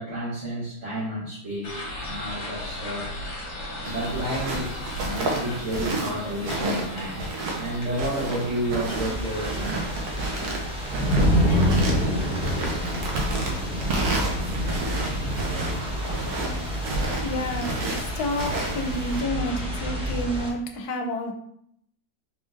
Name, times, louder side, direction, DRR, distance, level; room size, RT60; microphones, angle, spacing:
voice 1, 0.0-3.1 3.7-4.7 5.0-7.2 7.5-9.8, right 1 dB, 50° right, -8 dB, 1.3 m, -31 dB
sound 1, 1.6-20.1, left 1 dB, 50° left, 1.2 m, -39 dB
sound 2, 3.8-19.2, right 2 dB, 75° right, 1.3 m, -31 dB
sound 3, 8.9-20.5, equal, 5° right, 0.5 m, -27 dB
voice 2, 17.2-21.3, left 1 dB, 80° left, 4 dB, 1.1 m, -30 dB
3.7 x 3.6 x 2.5 m, 0.71 s
omnidirectional pair, 1.7 m